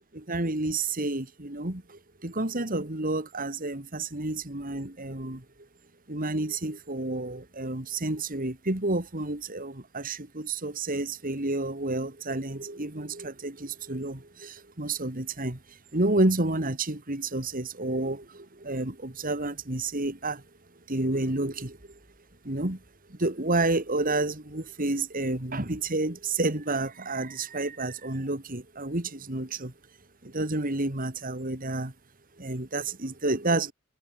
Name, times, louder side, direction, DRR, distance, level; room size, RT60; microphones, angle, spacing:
voice 1, 0.1-5.4 6.1-15.6 15.9-20.4 20.9-21.8 22.4-22.8 23.1-29.7 30.2-31.9 32.4-33.7, right 2 dB, 40° right, 2.7 m, -30 dB
head